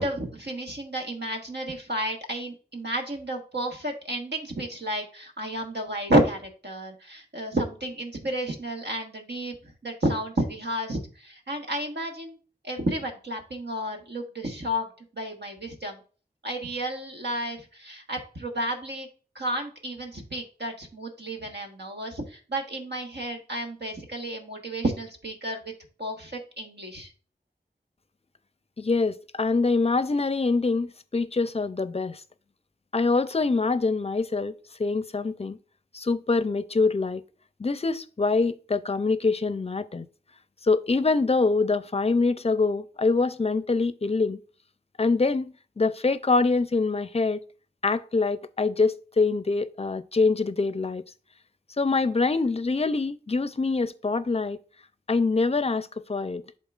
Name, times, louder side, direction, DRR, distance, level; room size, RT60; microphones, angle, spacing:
voice 1, 0.0-12.4 12.6-14.9 15.1-16.0 16.4-19.1 19.3-25.6 26.0-27.1, right 1 dB, 80° right, 1.4 m, -31 dB
voice 2, 28.8-32.2 32.9-34.5 34.8-35.6 35.9-37.2 37.6-40.1 40.6-44.4 45.0-47.4 47.8-51.0 51.8-54.6 55.1-56.4, left 3 dB, 35° left, 0.5 m, -25 dB
11.0 x 3.8 x 2.4 m
wide cardioid pair, 55°, 18 cm